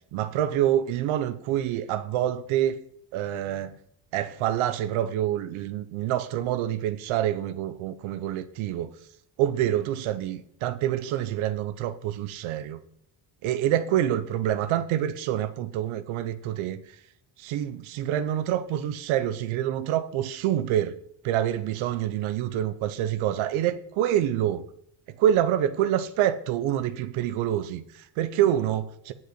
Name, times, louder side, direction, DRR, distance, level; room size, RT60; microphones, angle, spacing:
voice 1, 0.1-2.8 3.1-3.8 4.1-8.9 9.4-12.8 13.4-16.8 17.4-21.0 21.2-24.6 25.2-29.1, right 11 dB, 85° right, 0.8 m, -26 dB
9.4 x 5.1 x 7.9 m
supercardioid pair, 70°, 47 cm